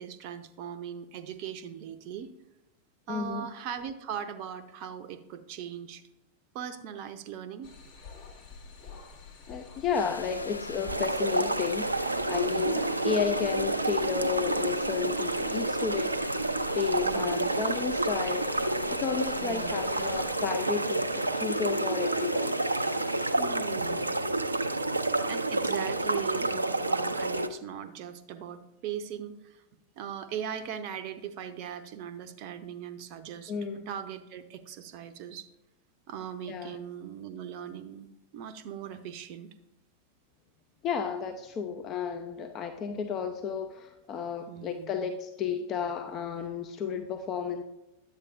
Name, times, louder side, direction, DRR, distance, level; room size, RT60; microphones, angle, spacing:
voice 1, 0.0-2.3 3.1-6.0 6.5-7.7 12.4-12.8 17.0-17.6 19.4-19.7 23.4-24.2 25.3-29.6 30.0-33.5 33.9-35.5 36.1-38.1 38.3-39.5 44.5-45.1, right 9 dB, 45° right, 10 dB, 0.6 m, -39 dB
voice 2, 3.1-3.5 9.5-16.2 16.8-18.4 18.9-22.5 33.5-33.9 36.5-36.8 40.8-47.6, left 6 dB, 30° left, 7 dB, 0.5 m, -32 dB
sound 1, 7.6-20.3, left 4 dB, 55° left, 1.8 m, -48 dB
sound 2, 9.9-23.3, left 2 dB, 85° left, 0.4 m, -41 dB
sound 3, 10.9-27.5, right 2 dB, 80° right, 0.4 m, -29 dB
10.5 x 8.1 x 2.5 m, 0.95 s
figure-of-eight pair, 90°, 0 cm